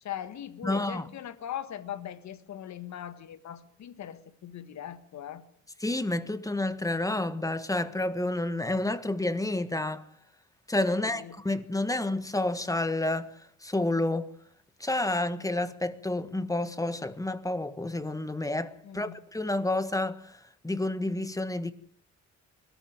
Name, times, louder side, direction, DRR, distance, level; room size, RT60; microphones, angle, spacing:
voice 1, 0.0-5.4 10.9-11.3 18.8-19.2, left 10 dB, 65° left, 1.8 m, -40 dB
voice 2, 0.6-1.1 5.8-10.0 10.7-14.3 14.8-21.7, left 2 dB, 10° left, 1.6 m, -30 dB
21.5 x 14.0 x 9.2 m
cardioid pair, 90°, 30 cm